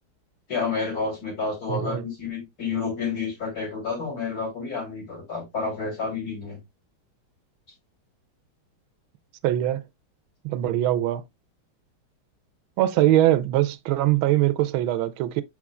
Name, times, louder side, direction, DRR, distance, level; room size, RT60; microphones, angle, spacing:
voice 1, 0.5-6.6, left 4 dB, 45° left, 3.5 m, -30 dB
voice 2, 1.7-2.0 9.4-9.8 10.4-11.2 12.8-15.4, right 13 dB, 80° right, 1.4 m, -22 dB
6.7 x 6.0 x 2.3 m
omnidirectional pair, 2.2 m